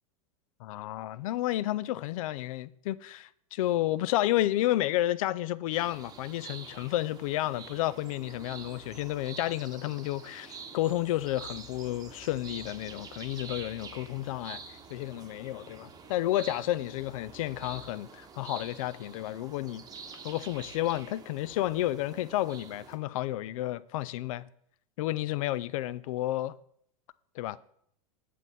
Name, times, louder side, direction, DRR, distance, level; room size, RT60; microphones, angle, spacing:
voice 1, 0.6-14.6 14.9-19.8 20.2-24.5 25.0-26.6 27.4-27.6, left 15 dB, 65° left, 0.4 m, -31 dB
sound 1, 5.7-23.0, right 5 dB, 20° right, 1.0 m, -47 dB
8.0 x 7.5 x 4.1 m
hypercardioid pair, 100°, 19 cm